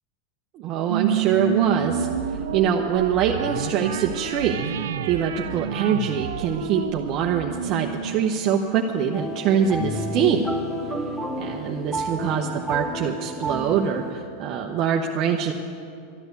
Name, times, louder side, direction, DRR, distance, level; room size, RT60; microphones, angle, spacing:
voice 1, 0.5-4.7 5.1-10.5 11.4-15.5, right 7 dB, 45° right, 1 dB, 0.9 m, -24 dB
sound 1, 0.9-9.6, right 9 dB, 85° right, 0.5 m, -30 dB
sound 2, 9.1-14.1, right 2 dB, 5° left, 0.9 m, -31 dB
sound 3, 9.6-14.8, left 2 dB, 50° left, 1.1 m, -37 dB
13.0 x 10.5 x 8.1 m, 2.5 s
supercardioid pair, 135°, 0 cm